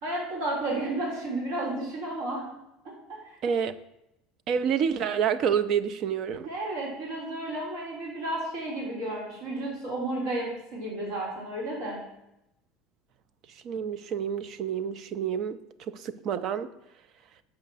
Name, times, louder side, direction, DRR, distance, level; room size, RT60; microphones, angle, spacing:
voice 1, 0.0-2.4 3.1-3.2 6.4-12.0, right 1 dB, 65° right, -4 dB, 3.1 m, -32 dB
voice 2, 3.4-3.8 4.5-6.5 13.5-15.6 15.9-16.7, right 7 dB, 35° right, 14 dB, 0.4 m, -28 dB
6.6 x 5.0 x 7.0 m, 0.86 s
cardioid pair, 180°, 0 cm